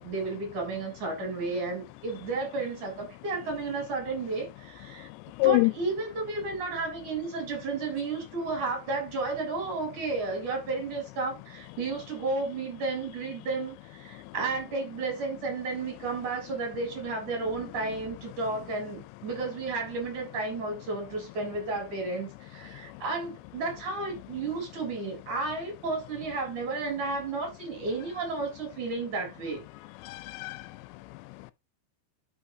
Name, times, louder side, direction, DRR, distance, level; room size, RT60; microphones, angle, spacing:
voice 1, 0.0-5.1 5.4-29.6, right 3 dB, 45° right, 5.0 m, -32 dB
voice 2, 5.4-5.7 14.2-14.3 22.9-23.0 30.0-31.5, left 21 dB, 85° left, 2.8 m, -28 dB
11.5 x 6.0 x 2.8 m
omnidirectional pair, 5.0 m